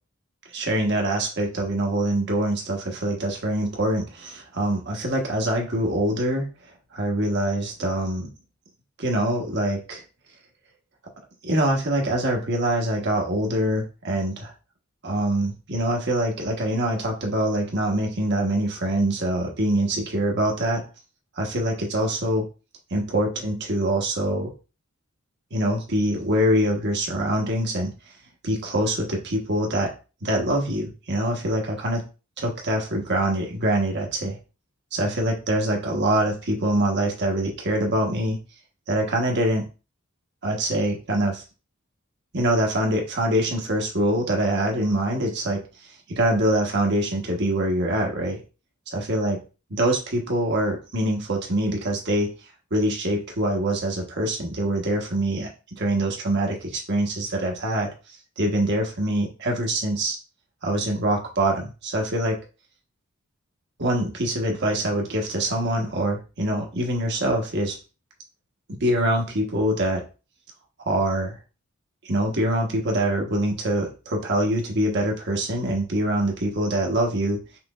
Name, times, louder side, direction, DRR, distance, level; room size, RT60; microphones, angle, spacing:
voice 1, 0.5-6.5 6.9-8.3 9.0-10.0 11.4-14.5 15.0-20.8 21.4-22.5 22.9-24.5 25.5-27.9 28.4-29.9 30.2-32.0 32.4-34.4 34.9-38.4 38.9-39.7 40.4-41.4 42.3-45.6 46.1-48.4 48.9-49.4 49.7-52.3 52.7-55.5 55.8-57.9 58.4-60.2 60.6-62.4 63.8-67.8 68.7-70.0 70.9-71.4 72.0-77.4, right 1 dB, 55° right, 1 dB, 1.2 m, -24 dB
5.9 x 3.3 x 2.4 m, 0.32 s
head